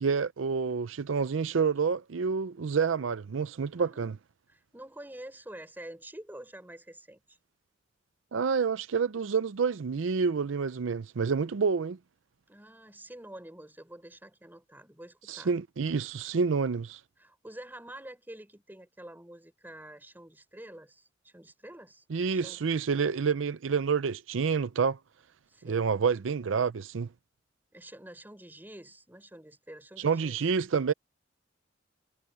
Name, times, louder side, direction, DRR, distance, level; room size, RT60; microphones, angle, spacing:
voice 1, 0.0-4.1 8.3-12.0 15.3-17.0 22.1-25.0 25.6-27.1 30.0-30.9, right 5 dB, 80° right, 0.5 m, -28 dB
voice 2, 3.8-4.2 4.5-7.4 12.5-15.5 17.2-22.0 22.3-22.6 25.5-25.9 27.7-30.5, right 1 dB, 10° right, 4.5 m, -48 dB
head